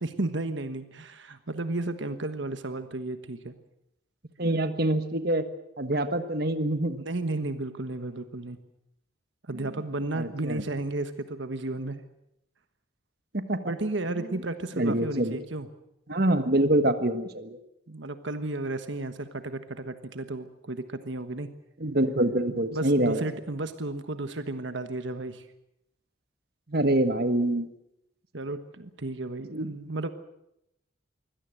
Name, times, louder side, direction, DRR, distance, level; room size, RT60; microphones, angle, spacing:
voice 1, 0.0-3.5 7.0-8.6 9.4-12.0 13.7-15.7 17.9-21.5 22.7-25.4 28.3-30.1, right 2 dB, 70° right, 9 dB, 1.3 m, -33 dB
voice 2, 4.4-5.4 5.8-7.0 10.1-10.6 13.3-13.6 14.2-14.3 14.8-15.4 16.1-17.6 21.8-23.2 26.7-27.7 29.5-29.7, right 1 dB, 50° right, 9 dB, 1.5 m, -25 dB
24.5 x 17.0 x 7.9 m, 0.81 s
head